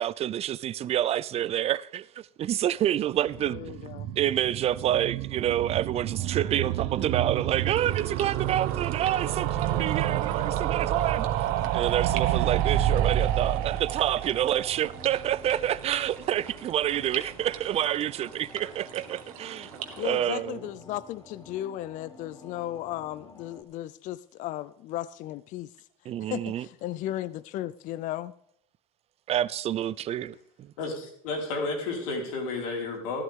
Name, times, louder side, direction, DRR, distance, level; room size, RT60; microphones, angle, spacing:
voice 1, 0.0-3.7 4.2-11.5 11.7-19.7 20.0-20.7 26.1-26.7 29.3-30.7, right 11 dB, 35° right, 0.5 m, -28 dB
sound 1, 3.3-16.2 16.5-16.6 16.8-16.9 17.1-17.2, right 12 dB, 60° right, 0.9 m, -29 dB
voice 2, 3.5-4.1 20.0-25.7 26.3-28.3, left 13 dB, 45° left, 0.4 m, -35 dB
sound 2, 5.3-23.6, left 2 dB, 20° left, 3.0 m, -51 dB
sound 3, 7.7-20.3, right 9 dB, 85° right, 1.7 m, -44 dB
voice 3, 30.8-33.2, left 3 dB, 75° left, 4.2 m, -32 dB
13.5 x 12.5 x 3.6 m
supercardioid pair, 105°, 18 cm